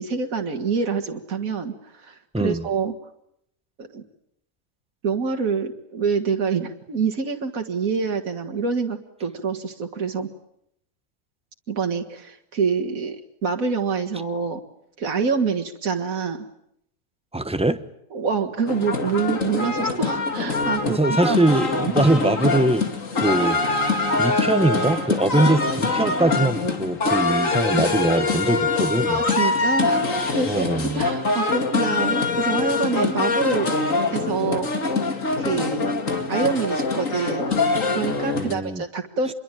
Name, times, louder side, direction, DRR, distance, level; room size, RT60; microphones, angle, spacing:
voice 1, 0.0-2.9 3.8-4.0 5.0-10.3 11.7-14.6 15.0-16.5 18.1-21.4 25.3-25.4 29.1-33.7 34.1-34.7 35.4-36.0 36.3-37.5 37.9-39.3, right 5 dB, 75° right, 2.2 m, -26 dB
voice 2, 2.3-2.7 17.3-17.8 20.9-22.9 23.1-23.6 24.2-29.2 30.5-31.0 38.3-38.8, right 2 dB, 5° right, 1.1 m, -22 dB
sound 1, 18.7-38.5, left 3 dB, 65° left, 2.7 m, -24 dB
26.5 x 22.5 x 9.1 m
omnidirectional pair, 1.5 m